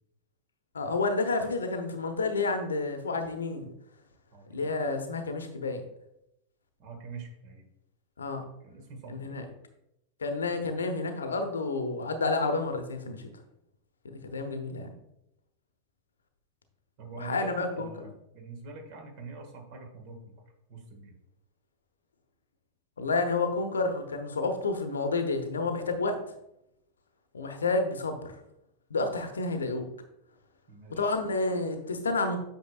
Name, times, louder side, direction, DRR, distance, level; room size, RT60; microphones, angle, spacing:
voice 1, 0.7-3.7 4.5-5.8 8.2-8.4 9.1-9.4 10.2-13.2 14.0-14.9 17.1-17.9 23.0-26.2 27.3-28.3 28.9-29.9 30.9-32.4, left 3 dB, 70° left, 6 dB, 0.9 m, -30 dB
voice 2, 4.3-4.7 6.8-7.7 8.6-9.4 10.6-10.9 17.0-20.3 20.7-21.1 30.7-31.1, right 4 dB, 45° right, 3 dB, 1.7 m, -44 dB
8.5 x 6.0 x 2.4 m, 0.83 s
figure-of-eight pair, 90°, 0 cm